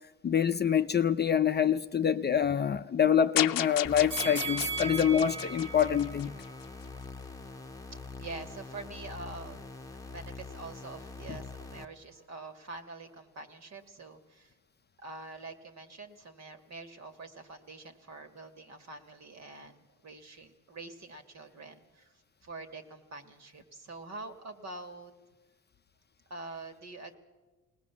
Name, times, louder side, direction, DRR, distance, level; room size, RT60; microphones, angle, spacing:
voice 1, 0.2-6.3 11.3-11.4, left 8 dB, 30° left, 0.6 m, -26 dB
sound 1, 3.4-6.6, left 15 dB, 75° left, 0.7 m, -34 dB
sound 2, 3.8-11.8, left 3 dB, 10° left, 1.1 m, -44 dB
sound 3, 4.1-7.2 7.6-7.7, right 5 dB, 70° right, 2.9 m, -38 dB
voice 2, 7.9-9.7 10.0-14.5 15.0-22.1 22.4-25.1 26.3-27.2, right 3 dB, 50° right, 2.3 m, -45 dB
20.5 x 19.0 x 7.2 m
cardioid pair, 100°, 34 cm